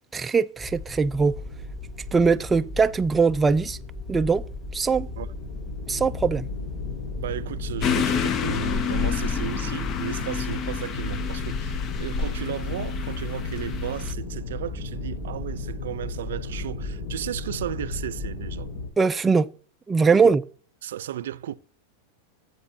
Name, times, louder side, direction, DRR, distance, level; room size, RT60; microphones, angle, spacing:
voice 1, 0.1-1.4 2.1-3.8 4.1-4.4 4.7-5.1 5.9-6.5 19.0-19.5 19.9-20.4, right 5 dB, 15° right, 0.3 m, -21 dB
sound 1, 0.6-18.7, left 2 dB, 10° left, 4.2 m, -37 dB
sound 2, 1.3-18.9, left 3 dB, 70° left, 5.0 m, -37 dB
voice 2, 7.2-18.7 20.2-20.3 20.8-21.5, right 11 dB, 80° right, 0.5 m, -34 dB
sound 3, 7.8-14.1, left 7 dB, 35° left, 0.7 m, -29 dB
14.0 x 8.0 x 2.8 m
supercardioid pair, 130°, 0 cm